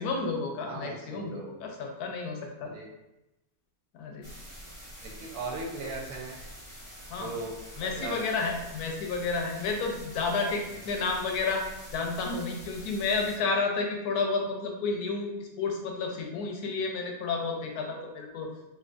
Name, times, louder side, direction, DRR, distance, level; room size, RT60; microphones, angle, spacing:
voice 1, 0.0-2.7 3.9-4.3 7.1-7.3 7.8-11.6 11.9-18.5, left 4 dB, 90° left, 2 dB, 1.1 m, -31 dB
voice 2, 0.6-1.5 2.6-2.9 5.0-6.4 7.1-8.2, right 3 dB, 90° right, 0 dB, 1.2 m, -38 dB
sound 1, 4.2-13.4, equal, 25° left, 1.4 m, -46 dB
3.2 x 2.7 x 2.5 m, 0.95 s
omnidirectional pair, 1.6 m